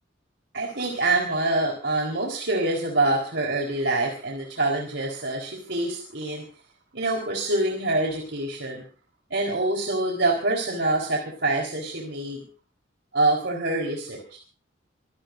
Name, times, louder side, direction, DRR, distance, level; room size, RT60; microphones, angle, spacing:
voice 1, 0.5-6.4 6.9-8.8 9.3-12.5 13.1-14.4, right 2 dB, 70° right, 0 dB, 4.3 m, -25 dB
26.5 x 18.5 x 2.7 m, 0.40 s
head